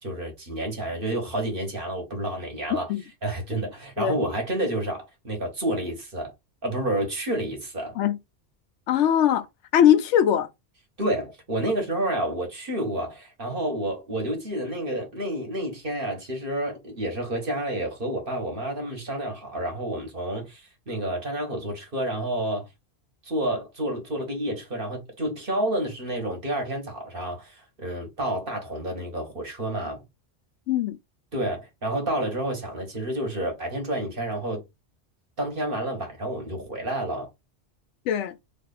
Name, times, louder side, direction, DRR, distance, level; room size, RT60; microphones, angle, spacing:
voice 1, 0.0-2.9 3.2-6.3 6.6-8.0 11.0-22.7 23.2-30.0 31.3-34.6 35.4-37.3, right 1 dB, 50° right, 1.5 m, -29 dB
voice 2, 8.9-9.5 9.7-10.5 30.7-31.0 38.1-38.3, left 10 dB, 90° left, 0.9 m, -20 dB
3.1 x 2.5 x 4.0 m
omnidirectional pair, 1.2 m